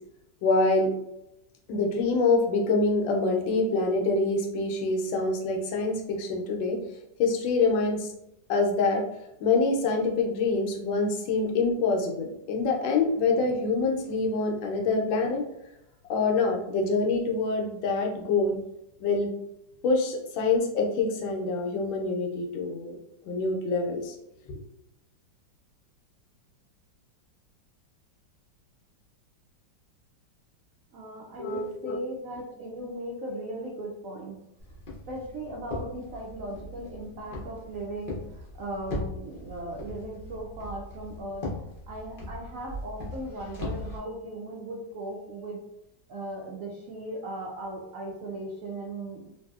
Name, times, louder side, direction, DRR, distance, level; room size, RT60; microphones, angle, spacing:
voice 1, 0.4-0.9 1.7-6.8 7.2-8.1 8.5-9.0 9.4-15.4 16.1-18.6 19.0-19.3 19.8-22.9 23.3-24.1 31.4-31.9, left 3 dB, 90° left, 1 dB, 1.4 m, -25 dB
voice 2, 30.9-34.4 35.1-41.5 41.9-45.6 46.1-49.3, right 1 dB, 80° right, -2 dB, 0.7 m, -37 dB
Walk footsteps, 34.6-44.0, left 1 dB, 55° left, 0.5 m, -39 dB
3.1 x 2.7 x 2.3 m, 0.86 s
omnidirectional pair, 2.0 m